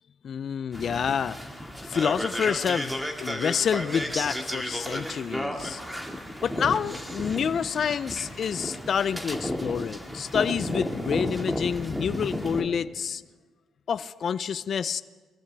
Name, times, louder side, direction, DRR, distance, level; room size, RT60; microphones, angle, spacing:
voice 1, 0.2-1.4 1.9-5.8 6.4-13.2 13.9-15.0, left 7 dB, 55° left, 15 dB, 0.4 m, -28 dB
sound 1, 0.7-12.6, equal, 5° right, 2.0 m, -33 dB
23.0 x 14.0 x 3.4 m, 1.4 s
cardioid pair, 90°, 0 cm